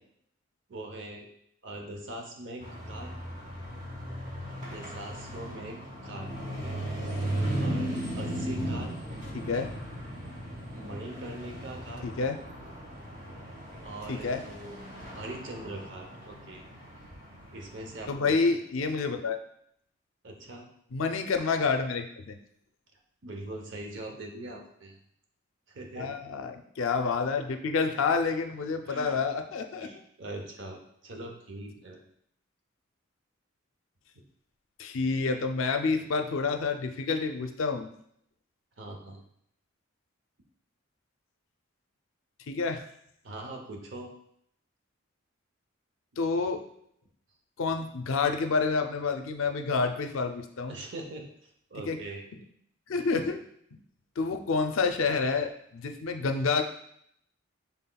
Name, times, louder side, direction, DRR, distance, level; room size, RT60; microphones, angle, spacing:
voice 1, 0.7-1.3 1.6-3.1 4.7-6.8 7.6-8.9 10.7-12.1 13.8-14.8 15.2-16.6 17.5-18.6 20.2-20.7 23.2-25.0 25.7-26.1 28.9-29.2 29.8-32.1 34.1-34.2 38.8-39.2 43.2-44.1 50.7-52.2, right 2 dB, 60° right, 2 dB, 0.7 m, -42 dB
sound 1, 2.6-18.1, right 1 dB, 35° right, 1.0 m, -37 dB
voice 2, 9.3-9.7 12.0-12.4 14.1-14.4 18.1-19.4 20.9-22.4 26.0-29.9 34.8-37.9 42.5-42.8 46.2-46.6 47.6-50.8 51.8-52.0 52.9-53.4 53.7-53.8 54.2-56.6, left 4 dB, 75° left, 6 dB, 0.4 m, -28 dB
5.6 x 3.6 x 2.2 m, 0.70 s
head